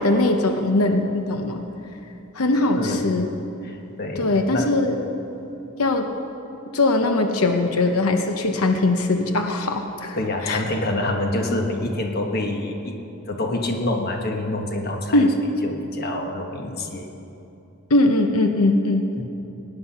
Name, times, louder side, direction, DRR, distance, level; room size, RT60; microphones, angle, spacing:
voice 1, 0.0-1.6 2.3-3.3 4.2-5.0 5.8-6.1 6.7-10.2 10.4-10.6 15.1-15.3 17.9-19.1, left 2 dB, 90° left, 5 dB, 0.9 m, -20 dB
voice 2, 3.6-4.7 10.1-13.0 13.3-15.2 15.6-17.1 19.2-19.3, left 1 dB, 45° left, 3 dB, 1.3 m, -26 dB
17.5 x 10.0 x 5.8 m, 2.9 s
head